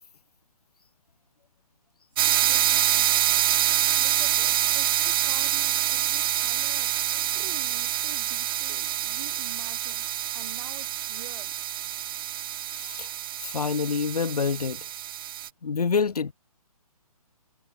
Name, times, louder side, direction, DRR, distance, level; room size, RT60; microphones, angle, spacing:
voice 1, 2.1-3.2 3.9-11.5, right 8 dB, 55° right, 5.8 m, -47 dB
sound 1, 2.2-15.5, right 12 dB, 35° right, 1.3 m, -26 dB
voice 2, 12.7-13.1 13.4-14.8 15.6-16.3, left 5 dB, 85° left, 1.3 m, -27 dB
hypercardioid pair, 155°, 19 cm